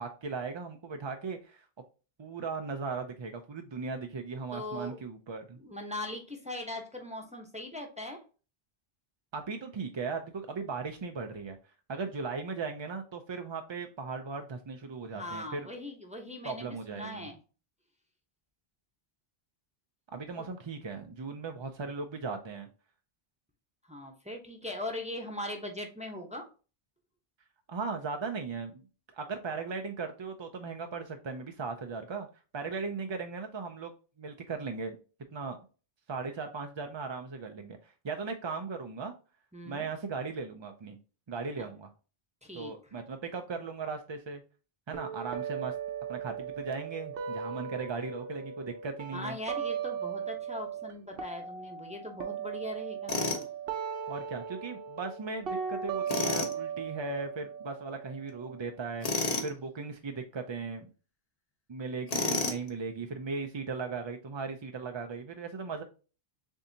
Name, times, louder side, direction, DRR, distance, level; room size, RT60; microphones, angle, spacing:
voice 1, 0.0-1.7 2.2-5.6 9.3-11.6 11.9-15.7 16.4-17.3 20.1-22.7 27.7-28.8 29.1-32.3 32.5-35.0 35.3-35.6 36.1-39.1 39.6-41.0 41.3-41.9 42.5-44.4 44.9-45.7 46.1-49.4 54.1-60.9 61.7-65.8, right 4 dB, 45° right, 5 dB, 0.4 m, -37 dB
voice 2, 4.5-5.0 5.6-8.2 15.1-17.4 23.8-26.5 39.5-39.9 41.6-41.7 42.4-42.7 49.1-53.2, left 1 dB, 10° right, 2 dB, 0.8 m, -40 dB
sound 1, 44.9-50.9 51.2-59.0, right 7 dB, 65° right, 0.9 m, -38 dB
Tools, 53.1-53.5 56.1-56.5 59.0-59.5 62.1-62.7, left 3 dB, 40° left, 0.9 m, -30 dB
7.0 x 2.7 x 2.7 m, 0.35 s
omnidirectional pair, 1.0 m